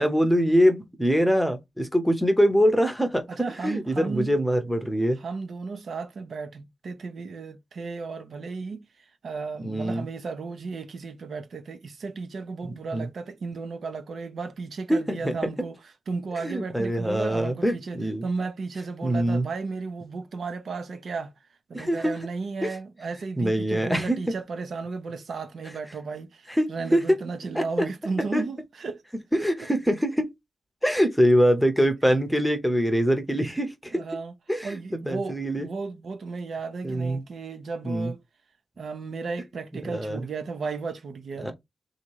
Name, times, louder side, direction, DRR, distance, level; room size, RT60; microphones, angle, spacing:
voice 1, 0.0-3.3 3.6-5.2 9.6-10.0 12.6-13.1 14.9-15.4 16.4-18.2 19.0-19.4 21.7-22.2 22.6-22.7 23.4-24.2 26.5-27.2 27.5-27.9 28.3-28.4 29.3-30.3 30.8-34.0 34.5-35.7 36.8-37.2 37.8-38.1 39.9-40.2 41.4-41.5, equal, ahead, 0.8 m, -23 dB
voice 2, 3.3-4.3 5.2-8.9 9.2-15.8 16.1-21.3 21.7-29.0 29.4-29.5 33.9-34.3 34.6-38.2 38.8-41.5, right 4 dB, 60° right, 0.8 m, -34 dB
3.8 x 2.8 x 4.6 m
wide cardioid pair, 155°, 0 cm